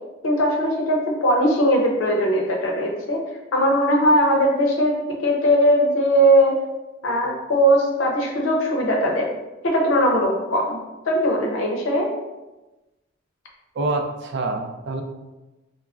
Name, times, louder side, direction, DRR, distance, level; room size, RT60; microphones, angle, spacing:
voice 1, 0.2-3.2 3.5-6.6 7.0-9.3 9.6-10.8 11.1-12.1, equal, 85° left, 0 dB, 0.6 m, -19 dB
voice 2, 13.8-15.0, right 2 dB, 60° right, 4 dB, 0.3 m, -26 dB
3.4 x 2.0 x 2.3 m, 1.1 s
head